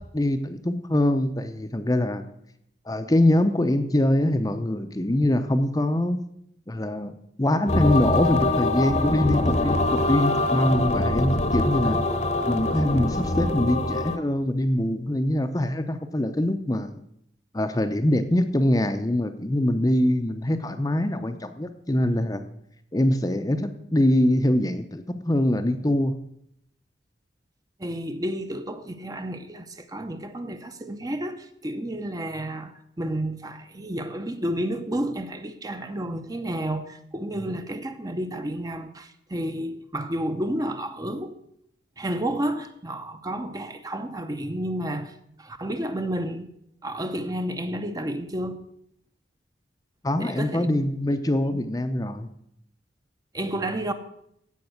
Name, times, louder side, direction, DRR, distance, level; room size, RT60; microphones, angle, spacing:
voice 1, 0.1-2.2 2.9-6.2 6.7-12.0 12.4-17.0 17.5-22.4 22.9-26.1 50.0-52.3, left 1 dB, 20° left, 0.7 m, -23 dB
sound 1, 7.7-14.2, left 2 dB, 40° left, 1.0 m, -24 dB
voice 2, 27.8-41.3 42.0-46.5 46.8-48.6 50.2-50.7 51.5-51.6 53.3-53.9, right 1 dB, 20° right, 0.8 m, -31 dB
16.0 x 5.3 x 8.0 m
head